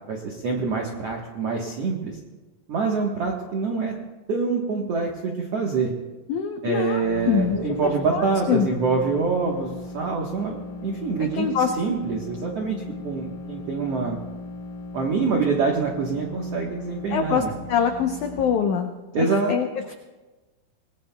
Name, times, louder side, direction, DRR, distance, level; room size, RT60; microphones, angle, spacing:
voice 1, 0.1-2.2 2.7-3.9 4.3-5.9 6.6-10.6 10.8-11.5 11.8-12.8 13.0-14.2 14.9-17.5 19.1-19.5, right 4 dB, 65° right, -1 dB, 1.6 m, -25 dB
voice 2, 6.3-7.6 8.1-8.7 11.3-11.7 17.1-17.4 17.7-19.9, left 7 dB, 90° left, 4 dB, 1.7 m, -24 dB
sound 1, 6.9-18.6, left 3 dB, 65° left, 3.2 m, -38 dB
26.0 x 19.0 x 2.3 m, 1.2 s
omnidirectional pair, 4.6 m